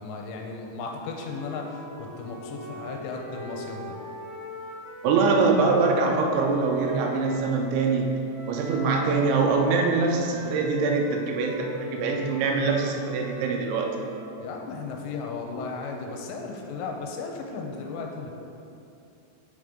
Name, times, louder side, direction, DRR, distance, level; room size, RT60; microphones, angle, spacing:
voice 1, 0.0-4.0 14.4-18.3, left 4 dB, 85° left, 2 dB, 2.8 m, -35 dB
Wind instrument woodwind instrument, 1.2-7.6 8.3-14.4, right 1 dB, 65° left, 1.5 m, -40 dB
voice 2, 5.0-8.1 8.5-14.0, right 4 dB, 85° right, 2 dB, 3.0 m, -23 dB
7.9 x 5.1 x 3.6 m, 2.7 s
omnidirectional pair, 5.1 m